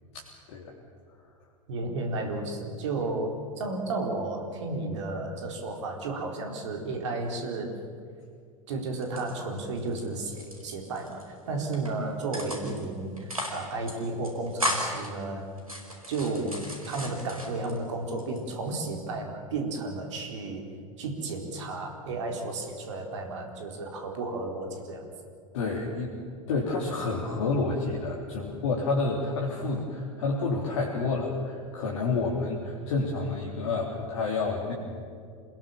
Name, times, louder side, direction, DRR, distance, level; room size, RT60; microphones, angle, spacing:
voice 1, 0.1-0.7 25.5-26.1 26.5-34.7, left 3 dB, 60° left, -2 dB, 3.6 m, -29 dB
voice 2, 1.7-7.7 8.7-15.5 16.1-16.6 16.8-20.7 21.0-25.1, right 3 dB, 60° right, 3 dB, 4.2 m, -33 dB
sound 1, 9.0-10.0 10.3-11.2 11.6-11.9 12.3-12.8 13.2-13.6 13.9-14.0 14.2-15.1 15.6-17.8 18.2-18.8, equal, 90° right, 4.7 m, -34 dB
28.5 x 20.5 x 7.4 m, 2.2 s
figure-of-eight pair, 85°, 17 cm